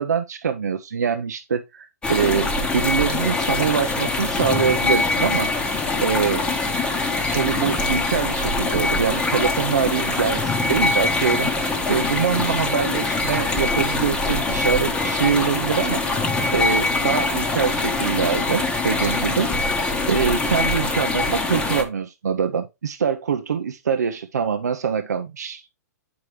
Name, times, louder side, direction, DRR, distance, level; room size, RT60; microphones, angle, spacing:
voice 1, 0.0-5.5 6.0-6.5 7.3-16.2 16.5-25.6, right 7 dB, 75° right, 0.6 m, -24 dB
sound 1, 2.0-21.8, left 3 dB, 10° left, 0.9 m, -23 dB
7.7 x 4.8 x 3.1 m
figure-of-eight pair, 120°, 9 cm